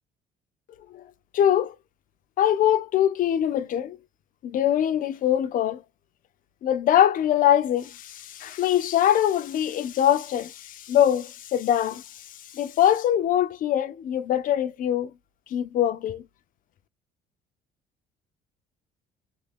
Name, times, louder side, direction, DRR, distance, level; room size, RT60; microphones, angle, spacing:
voice 1, 1.3-1.8 2.4-4.0 4.4-5.8 6.6-12.3 12.5-15.1 15.5-16.2, left 11 dB, 55° left, 0.4 m, -23 dB
2.6 x 2.4 x 3.2 m
cardioid pair, 110°, 17 cm